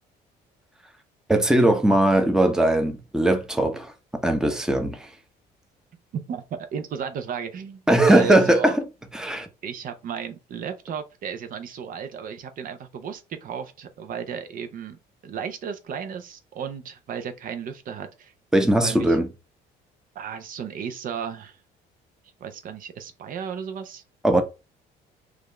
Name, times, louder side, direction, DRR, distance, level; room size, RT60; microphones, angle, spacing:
voice 1, 1.3-3.9 4.2-5.1 7.9-8.7 9.1-9.5 18.5-19.3 24.2-24.4, right 1 dB, 5° right, 0.7 m, -19 dB
voice 2, 6.1-8.8 9.6-18.3 18.8-19.2 20.1-21.6 22.4-24.0, right 7 dB, 55° right, 0.6 m, -34 dB
4.9 x 2.5 x 3.2 m
cardioid pair, 110°, 17 cm